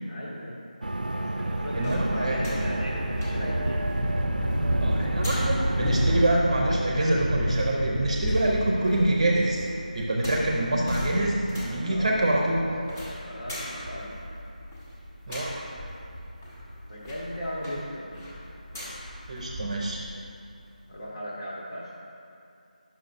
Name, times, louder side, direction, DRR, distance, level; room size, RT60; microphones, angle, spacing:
voice 1, 0.1-0.6 1.1-3.8 11.8-14.2 16.9-18.2 20.9-21.9, equal, 55° left, -6 dB, 1.1 m, -37 dB
sound 1, 0.8-6.4, right 1 dB, 75° right, 0.4 m, -31 dB
sound 2, 1.7-20.1 20.5-20.6, equal, 15° left, 0.8 m, -32 dB
voice 2, 1.7-2.4 4.8-9.6 9.9-12.6 15.3-15.5 19.3-20.0, right 1 dB, 30° right, -2 dB, 0.6 m, -25 dB
9.2 x 5.7 x 2.6 m, 2.6 s
figure-of-eight pair, 170°, 5 cm